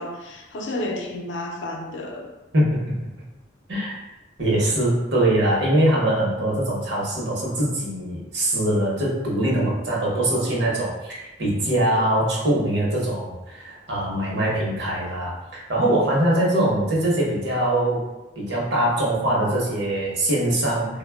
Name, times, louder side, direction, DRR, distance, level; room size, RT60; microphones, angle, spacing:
voice 1, 0.0-2.3, left 1 dB, 75° left, 1 dB, 0.5 m, -31 dB
voice 2, 4.4-18.0 18.4-21.0, right 1 dB, 65° right, -4 dB, 0.9 m, -22 dB
3.3 x 2.2 x 2.3 m, 1.0 s
head